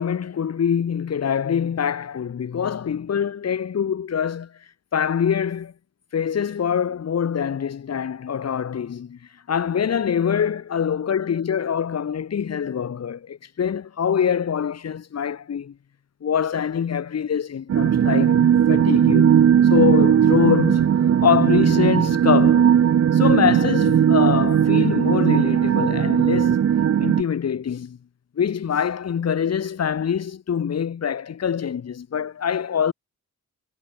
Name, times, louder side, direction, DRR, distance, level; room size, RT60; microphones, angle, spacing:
voice 1, 0.0-4.5 4.9-5.7 6.1-9.2 9.5-15.7 16.2-20.9 21.2-22.7 23.1-26.6 27.0-28.0 28.4-32.9, left 7 dB, 60° left, 2.6 m, -24 dB
sound 1, 17.7-27.2, right 9 dB, 55° right, 1.0 m, -17 dB
cardioid pair, 100°, 30 cm